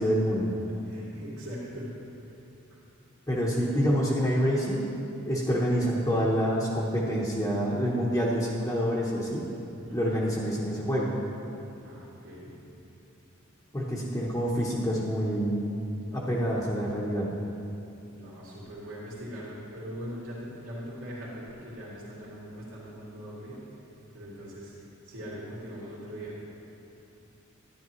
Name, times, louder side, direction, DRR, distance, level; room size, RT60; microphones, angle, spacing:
voice 1, 0.0-0.5 3.3-4.9 5.3-9.5 9.9-11.1 13.7-15.7 16.1-17.3, equal, 15° left, -6 dB, 0.9 m, -27 dB
voice 2, 0.7-1.9 2.2-2.4 2.7-2.8 9.8-10.2 11.8-12.6 18.1-23.6 24.1-26.4, equal, 85° right, -7 dB, 2.3 m, -41 dB
12.5 x 10.5 x 3.0 m, 2.9 s
head